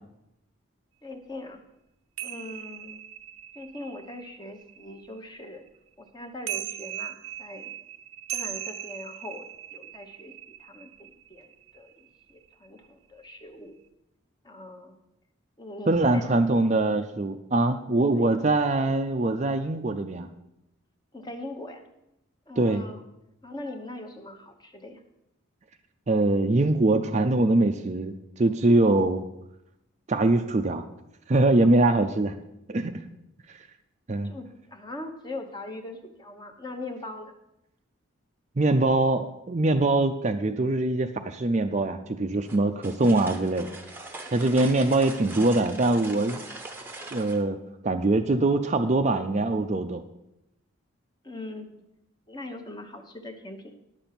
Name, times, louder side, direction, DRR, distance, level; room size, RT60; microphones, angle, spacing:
voice 1, 1.0-1.6 2.2-3.0 3.5-5.6 6.0-7.8 8.3-13.8 14.4-14.9 15.6-16.6 18.1-18.4 21.1-21.8 22.5-23.0 23.4-25.0 34.2-37.3 51.2-51.7 52.3-53.7, left 2 dB, 20° left, 5 dB, 1.0 m, -41 dB
sound 1, 2.2-5.7 6.2-12.2 12.5-12.9, right 10 dB, 90° right, 0.6 m, -39 dB
voice 2, 15.9-20.3 22.6-22.8 26.1-29.2 30.1-30.9 31.3-32.3 32.7-33.0 34.1-34.3 38.6-43.7 44.3-46.4 47.1-47.6 47.8-50.0, right 2 dB, 35° right, 7 dB, 0.4 m, -23 dB
sound 2, 42.5-47.4, right 2 dB, 10° right, 0.8 m, -41 dB
10.5 x 7.0 x 5.8 m, 0.87 s
head